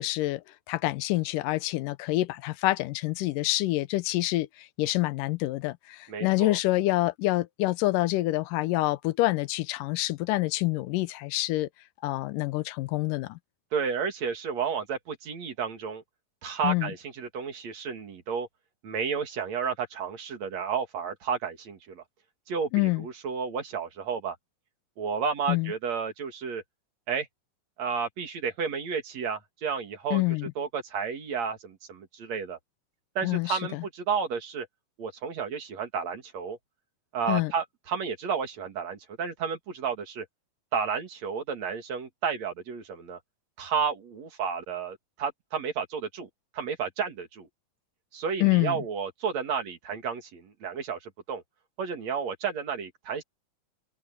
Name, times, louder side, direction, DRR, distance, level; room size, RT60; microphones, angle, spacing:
voice 1, 0.0-11.7 12.0-13.4 16.6-16.9 22.7-23.1 25.5-25.7 30.1-30.5 33.2-33.8 37.3-37.5 48.4-48.8, left 18 dB, 90° left, 2.3 m, -27 dB
voice 2, 6.1-6.6 13.7-16.0 16.4-18.5 18.8-22.0 22.5-24.4 25.0-26.6 27.1-27.3 27.8-30.2 30.6-32.6 33.1-34.7 35.0-36.6 37.1-40.2 40.7-43.2 43.6-47.5 48.1-51.4 51.8-53.2, right 6 dB, 55° right, 3.3 m, -32 dB
omnidirectional pair, 3.7 m